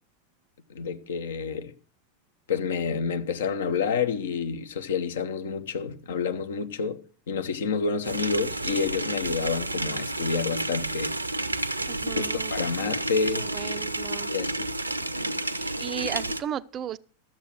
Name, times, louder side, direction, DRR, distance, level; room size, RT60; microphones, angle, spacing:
voice 1, 0.7-1.7 2.5-11.2 12.2-13.5 14.3-14.7, left 5 dB, 60° left, 1.1 m, -29 dB
sound 1, 8.0-16.4, right 2 dB, 85° right, 0.7 m, -30 dB
voice 2, 11.9-12.5 13.3-14.3 15.5-17.0, right 10 dB, 30° right, 0.5 m, -35 dB
13.0 x 7.5 x 6.2 m
figure-of-eight pair, 90°, 0 cm